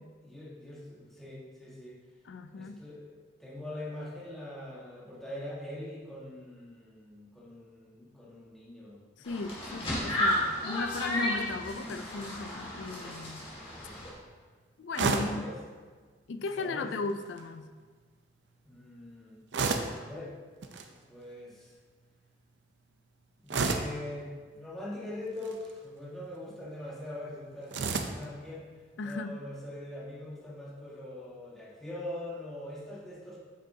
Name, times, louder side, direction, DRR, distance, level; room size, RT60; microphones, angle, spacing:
voice 1, 0.2-2.0 2.5-9.8 13.7-14.0 15.2-15.6 16.6-16.9 18.6-19.5 20.0-20.4 20.9-21.7 23.4-28.7 29.0-33.4, left 1 dB, ahead, -7 dB, 1.5 m, -43 dB
voice 2, 2.2-2.8 9.2-13.5 14.8-15.4 16.3-17.7 29.0-29.4, left 3 dB, 90° left, 9 dB, 0.4 m, -36 dB
sound 1, 9.2-14.1, left 1 dB, 30° left, 2.1 m, -33 dB
sound 2, 14.9-15.4 17.1-17.4 19.5-20.0 20.6-20.9 23.5-24.0 25.3-25.7 27.7-28.3, right 4 dB, 75° right, 0.6 m, -30 dB
8.3 x 6.2 x 2.8 m, 1.5 s
head